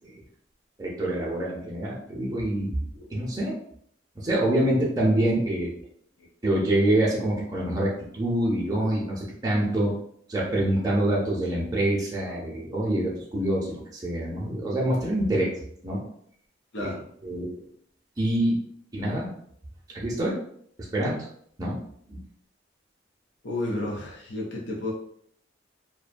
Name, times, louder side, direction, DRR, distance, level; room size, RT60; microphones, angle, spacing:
voice 1, 0.8-2.7 3.1-3.6 4.2-5.7 6.4-9.9 10.3-15.5 15.8-16.0 16.8-16.9 17.2-17.4 18.2-18.6 18.9-19.3 19.9-20.4 20.9-21.2 21.6-21.8 22.1-22.2, right 1 dB, 20° right, -5 dB, 0.6 m, -26 dB
voice 2, 16.7-17.1 23.4-24.9, left 2 dB, 70° left, -3 dB, 0.6 m, -32 dB
2.6 x 2.2 x 2.5 m, 0.66 s
head